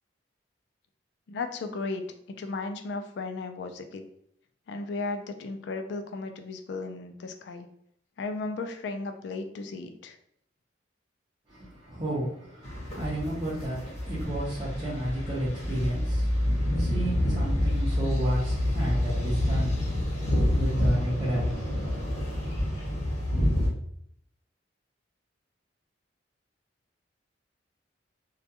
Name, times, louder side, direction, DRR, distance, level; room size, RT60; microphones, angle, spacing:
voice 1, 1.3-2.0 2.3-4.0 4.7-7.7 8.2-10.2, left 3 dB, 65° left, 0.3 m, -35 dB
voice 2, 11.5-22.3, right 1 dB, 25° right, 0.5 m, -32 dB
sound 1, 12.6-23.7, left 1 dB, 35° left, 0.7 m, -28 dB
2.3 x 2.2 x 2.7 m
head